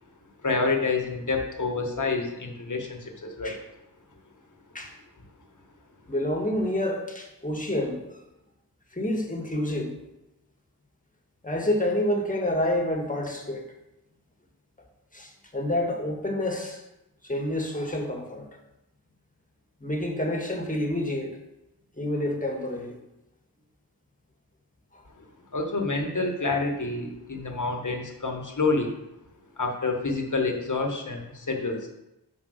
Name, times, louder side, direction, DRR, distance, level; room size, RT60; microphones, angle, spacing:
voice 1, 0.4-3.6 25.5-28.9 29.6-31.9, left 3 dB, 45° left, 2 dB, 1.4 m, -28 dB
voice 2, 6.1-8.2 8.9-10.0 11.4-13.6 15.1-16.8 17.2-18.5 19.8-21.4 22.0-23.0 24.9-25.0, left 1 dB, 20° left, 2 dB, 1.6 m, -28 dB
5.3 x 5.3 x 6.4 m, 0.91 s
cardioid pair, 40°, 41 cm